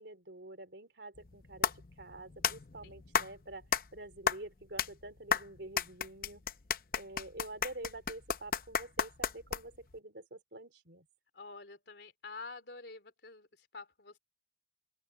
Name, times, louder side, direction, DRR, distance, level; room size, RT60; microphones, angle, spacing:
voice 1, 0.0-3.7 3.9-6.4 7.0-11.1, right 2 dB, 80° right, 3.6 m, -47 dB
sound 1, 1.2-9.9, left 7 dB, 50° left, 0.7 m, -35 dB
voice 2, 11.3-14.2, left 3 dB, 75° left, 3.1 m, -48 dB
open air
head